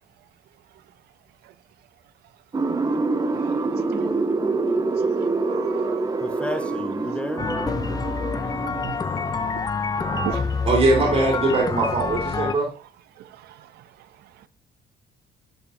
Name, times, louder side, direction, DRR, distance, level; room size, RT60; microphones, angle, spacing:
sound 1, 2.5-9.3, right 3 dB, 20° right, 0.8 m, -26 dB
voice 1, 3.3-4.4 4.9-5.0 5.4-6.1 6.5-6.9 7.5-7.8 8.2-9.7 9.9-11.1 11.8-11.9 12.5-12.7 13.2-14.5, right 14 dB, 70° right, 0.6 m, -39 dB
voice 2, 6.2-7.8, left 1 dB, 5° left, 0.9 m, -32 dB
sound 2, 7.4-12.6, left 5 dB, 20° left, 0.5 m, -27 dB
voice 3, 10.7-12.7, right 2 dB, 45° right, 3.2 m, -21 dB
11.5 x 4.8 x 2.7 m
cardioid pair, 110°, 17 cm